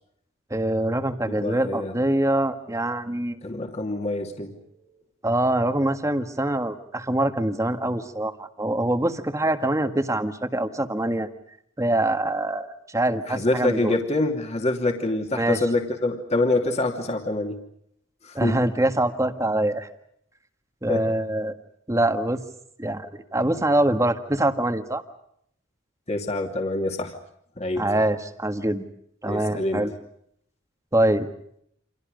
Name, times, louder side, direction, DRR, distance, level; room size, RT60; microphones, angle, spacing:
voice 1, 0.5-3.4 5.2-11.3 11.8-13.9 15.3-15.6 18.3-19.9 20.8-21.5 21.9-22.4 22.8-25.0 27.8-28.8 29.2-29.9 30.9-31.3, right 1 dB, 15° right, 7 dB, 1.7 m, -24 dB
voice 2, 1.3-1.9 3.4-4.6 13.3-17.6 18.2-18.6 20.9-21.1 26.1-27.1 27.6-27.9 29.2-29.9, left 2 dB, 35° left, 3 dB, 2.7 m, -26 dB
29.5 x 27.0 x 5.2 m, 0.71 s
head